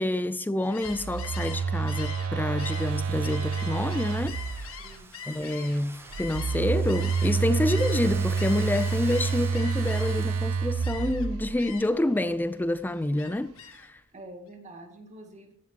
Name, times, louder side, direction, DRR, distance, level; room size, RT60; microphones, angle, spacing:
voice 1, 0.0-4.7 5.3-14.0, left 1 dB, 10° left, 0.4 m, -28 dB
Gull seagull, 0.6-7.4 7.7-10.4 10.8-11.3 11.6-12.1 12.4-13.9, left 7 dB, 70° left, 1.7 m, -43 dB
Telephone, 0.9-4.9 6.1-11.8, right 5 dB, 90° right, 0.5 m, -28 dB
Domestic sounds home sounds, 2.6-10.8, right 3 dB, 10° right, 0.9 m, -48 dB
voice 2, 4.8-5.2 14.1-15.5, right 1 dB, 35° right, 2.2 m, -46 dB
15.5 x 11.0 x 2.9 m
head